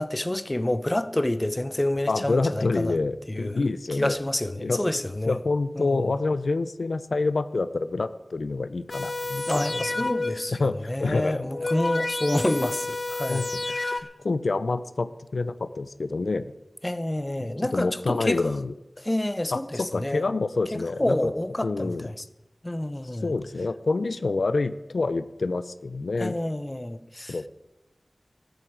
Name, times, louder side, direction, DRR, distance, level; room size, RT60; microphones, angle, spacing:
voice 1, 0.0-3.0 3.3-3.6 3.9-5.4 5.8-6.1 9.5-14.1 16.8-18.4 19.0-20.2 20.7-22.1 22.6-23.3 26.2-27.4, left 1 dB, 20° left, 0.7 m, -28 dB
voice 2, 2.1-4.2 4.6-4.9 5.2-11.5 13.3-13.6 14.2-16.5 17.4-18.7 19.5-21.3 21.6-22.1 23.2-26.4 27.3-27.5, left 3 dB, 90° left, 0.6 m, -27 dB
sound 1, 8.9-10.6 11.3-14.0, left 2 dB, 55° left, 0.9 m, -30 dB
14.0 x 8.0 x 8.7 m
wide cardioid pair, 70°, 0 cm